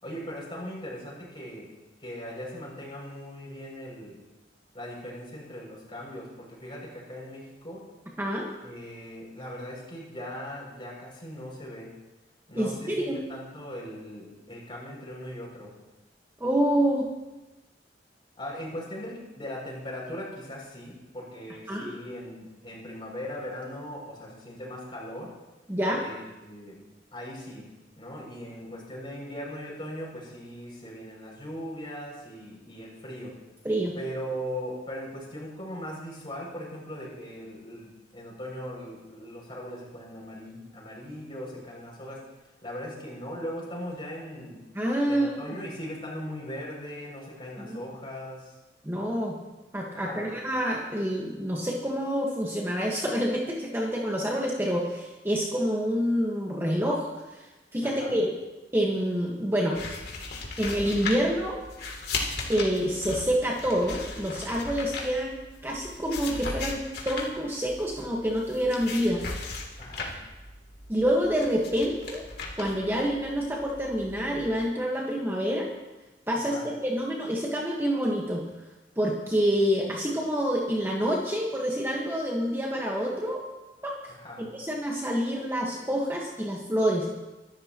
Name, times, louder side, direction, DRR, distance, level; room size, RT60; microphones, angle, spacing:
voice 1, 0.0-1.7 2.0-4.2 4.7-7.9 8.6-12.0 12.5-15.7 18.4-25.3 26.0-26.8 27.1-33.4 33.9-42.3 42.6-44.6 45.1-48.5 49.9-50.3 57.8-58.1 69.8-70.2 76.3-76.6 84.1-84.5, equal, 30° left, -4 dB, 6.7 m, -39 dB
voice 2, 8.2-8.5 12.5-13.2 16.4-17.1 21.7-21.9 25.7-26.0 33.6-33.9 44.7-45.6 47.6-47.8 48.8-49.4 49.7-58.3 58.7-59.8 60.6-61.6 62.5-69.2 70.9-72.2 72.6-75.7 76.3-78.4 79.0-83.4 83.8-84.1 84.4-87.1, equal, 15° right, -2 dB, 1.5 m, -27 dB
sound 1, 59.7-74.7, left 3 dB, 65° left, 3.0 m, -38 dB
25.0 x 13.5 x 3.1 m, 1.1 s
head